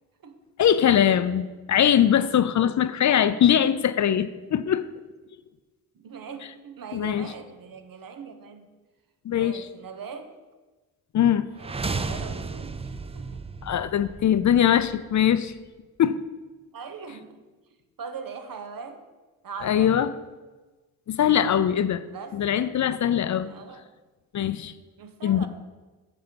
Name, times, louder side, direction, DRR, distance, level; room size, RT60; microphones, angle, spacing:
voice 1, 0.6-4.8 6.9-7.3 9.3-9.6 11.1-11.5 13.6-15.5 16.0-16.2 19.6-20.1 21.1-22.0 22.3-23.5 24.3-24.7 25.2-25.5, left 9 dB, 50° left, 14 dB, 0.4 m, -21 dB
voice 2, 5.9-8.8 9.3-10.3 11.6-12.7 13.1-13.4 16.7-17.4 18.0-19.0 19.4-19.9 22.1-22.8 23.4-23.9 25.0-25.5, right 5 dB, 60° right, 8 dB, 0.9 m, -41 dB
sound 1, 11.5-15.5, right 4 dB, 15° right, 0.4 m, -34 dB
7.9 x 4.3 x 5.2 m, 1.2 s
cardioid pair, 60°, 38 cm